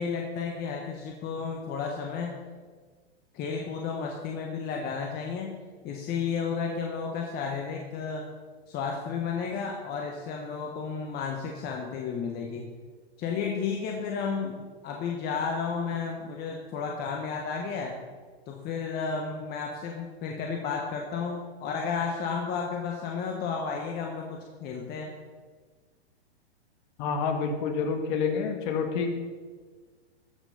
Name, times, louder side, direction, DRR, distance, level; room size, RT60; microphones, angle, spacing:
voice 1, 0.0-2.3 3.3-5.6 5.8-8.2 8.7-12.6 13.2-17.9 18.5-25.1, left 5 dB, 30° left, 1 dB, 1.3 m, -32 dB
voice 2, 27.0-29.2, left 5 dB, 45° left, 4 dB, 2.0 m, -28 dB
14.5 x 5.9 x 5.6 m, 1.5 s
hypercardioid pair, 125°, 33 cm